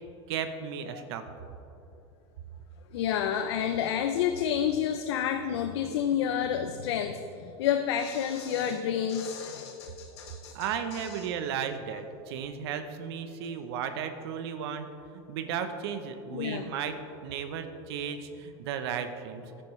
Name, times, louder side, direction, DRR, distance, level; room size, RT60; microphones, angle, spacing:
voice 1, 0.3-1.2 10.5-14.9 15.1-16.9 17.2-19.4, right 7 dB, 75° right, 8 dB, 0.8 m, -34 dB
voice 2, 2.9-11.3 16.3-16.7, left 9 dB, 85° left, 7 dB, 0.6 m, -30 dB
13.5 x 10.0 x 3.2 m, 2.8 s
supercardioid pair, 140°, 14 cm